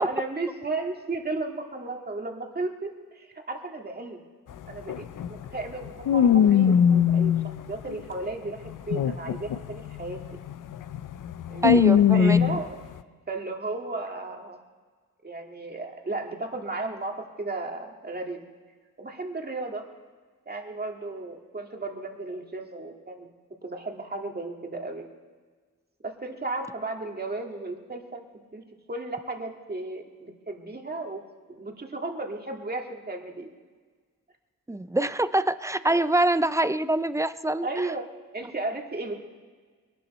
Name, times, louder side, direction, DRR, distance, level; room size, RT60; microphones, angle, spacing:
voice 1, 0.0-4.2 4.7-7.3 7.7-10.4 11.5-12.8 13.3-14.6 15.2-18.4 19.0-19.9 20.5-23.3 23.6-25.1 26.0-28.2 28.5-31.2 31.5-33.5 35.8-36.1 37.6-38.1 38.3-39.2, right 2 dB, 30° right, 2 dB, 1.9 m, -34 dB
sound 1, 4.5-4.6 4.9-8.1 8.7-12.7, left 8 dB, 70° left, 0.6 m, -22 dB
voice 2, 11.6-12.4 34.7-37.9, right 1 dB, 10° right, 14 dB, 0.4 m, -25 dB
22.5 x 12.0 x 4.2 m, 1.5 s
wide cardioid pair, 105°, 33 cm